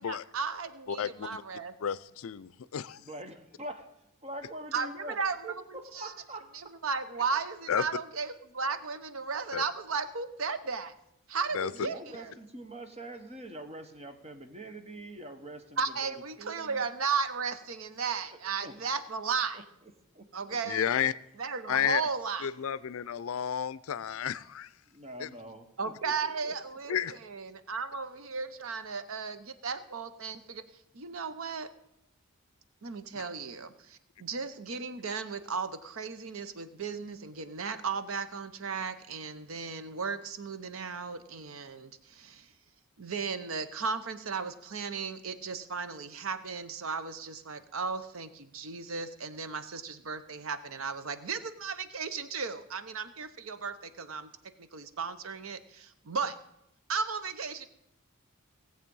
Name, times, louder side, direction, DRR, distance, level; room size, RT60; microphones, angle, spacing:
voice 1, 0.0-1.7 4.7-5.4 5.7-6.1 6.5-10.9 11.3-12.3 15.8-19.6 20.3-20.9 21.4-22.5 25.8-30.6 30.9-31.7 32.8-42.5 43.0-54.3 54.6-56.4 56.9-57.7, right 5 dB, 70° right, 11 dB, 0.8 m, -35 dB
voice 2, 0.9-1.4 1.8-3.0 7.7-7.8 9.5-9.6 11.5-11.7 20.7-21.1 21.7-22.0 22.4-24.7 25.2-25.3 26.9-27.1, left 8 dB, 70° left, 18 dB, 0.4 m, -31 dB
voice 3, 2.9-3.9 4.2-6.8 11.8-16.8 18.6-19.1 19.5-19.6 20.1-20.6 24.9-26.5 26.8-27.2, right 1 dB, 30° right, 6 dB, 1.2 m, -44 dB
17.5 x 7.6 x 5.4 m, 0.81 s
head